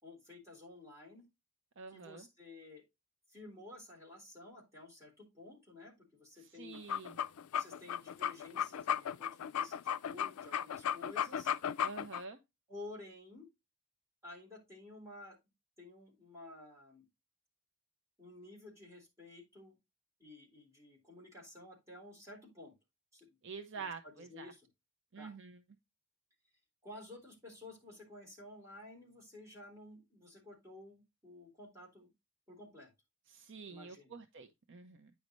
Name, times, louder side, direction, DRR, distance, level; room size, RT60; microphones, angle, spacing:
voice 1, 0.0-1.2 1.9-2.8 3.3-6.8 7.5-11.5 12.7-13.5 14.2-15.4 15.8-17.1 18.2-19.8 20.2-22.7 23.1-23.4 23.7-24.6 25.2-25.3 26.8-32.1 32.5-32.9 33.7-34.1, left 2 dB, 15° right, 3.7 m, -53 dB
voice 2, 1.8-2.3 6.4-7.2 11.8-12.4 23.4-24.5 25.1-25.6 33.3-35.1, right 5 dB, 55° right, 0.7 m, -47 dB
sound 1, 6.7-12.2, left 9 dB, 75° left, 0.4 m, -35 dB
9.4 x 5.3 x 3.1 m
head